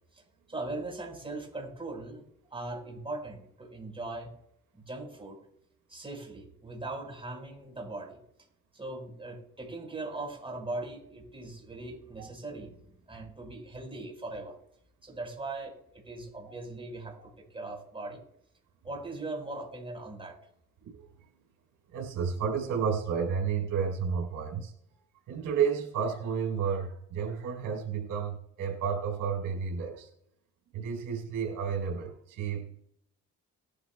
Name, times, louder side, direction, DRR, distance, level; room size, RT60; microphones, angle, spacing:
voice 1, 0.5-2.2 2.5-4.3 4.7-5.4 5.9-8.2 8.7-14.6 15.0-18.2 18.8-20.4, right 2 dB, 20° right, 1 dB, 5.0 m, -40 dB
voice 2, 21.9-24.7 25.3-30.1 30.7-32.8, right 6 dB, 90° right, 1 dB, 4.0 m, -31 dB
19.5 x 12.0 x 2.3 m, 0.71 s
cardioid pair, 90°, 30 cm